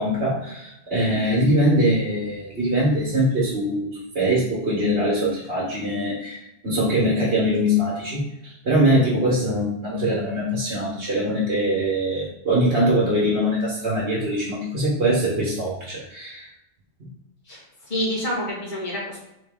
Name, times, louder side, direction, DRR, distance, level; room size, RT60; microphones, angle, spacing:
voice 1, 0.0-16.5 17.0-17.1, equal, 65° right, -6 dB, 1.3 m, -22 dB
voice 2, 17.9-19.2, equal, 45° left, -5 dB, 1.4 m, -27 dB
3.4 x 3.1 x 3.5 m, 0.85 s
omnidirectional pair, 1.1 m